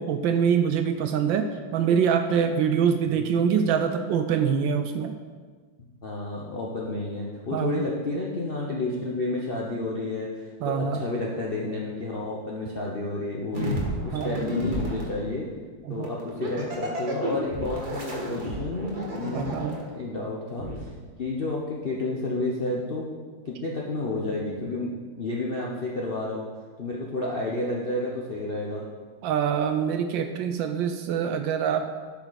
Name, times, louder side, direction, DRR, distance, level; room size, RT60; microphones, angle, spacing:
voice 1, 0.0-5.1 7.5-7.8 10.6-11.0 14.1-14.4 15.9-16.1 19.3-19.8 29.2-32.0, right 7 dB, 75° right, 7 dB, 1.2 m, -25 dB
voice 2, 6.0-15.5 15.9-20.9 21.2-23.1 23.4-26.5 26.8-28.9, left 2 dB, 55° left, -3 dB, 0.6 m, -31 dB
sound 1, 13.5-15.1 16.0-19.8 20.6-20.8, equal, 50° right, 2.1 m, -31 dB
11.5 x 5.7 x 4.0 m, 1.5 s
omnidirectional pair, 2.3 m